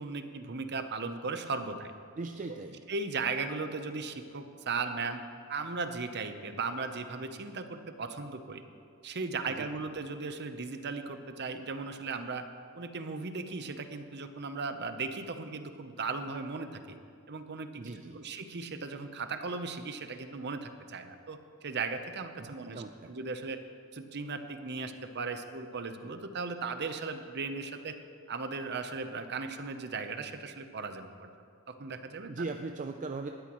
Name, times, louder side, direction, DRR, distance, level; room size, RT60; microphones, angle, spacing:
voice 1, 0.0-1.9 2.9-5.2 5.5-8.6 9.0-12.5 12.7-17.0 17.3-22.8 23.1-23.6 23.9-28.0 28.3-31.3 31.7-32.4, right 4 dB, 50° right, 8 dB, 0.8 m, -37 dB
voice 2, 2.1-2.8 9.5-9.7 17.8-18.2 22.4-23.1 32.2-33.3, right 3 dB, 35° right, 5 dB, 0.4 m, -39 dB
19.0 x 12.5 x 3.1 m, 2.4 s
head